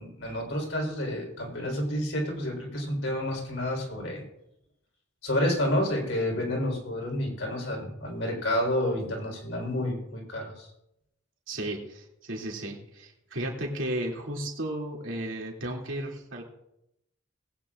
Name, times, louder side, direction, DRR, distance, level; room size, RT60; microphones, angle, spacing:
voice 1, 0.0-4.2 5.2-10.7, left 1 dB, 75° left, 0 dB, 4.0 m, -29 dB
voice 2, 11.5-16.4, right 1 dB, 75° right, 0 dB, 2.6 m, -34 dB
20.0 x 9.2 x 2.5 m, 0.80 s
head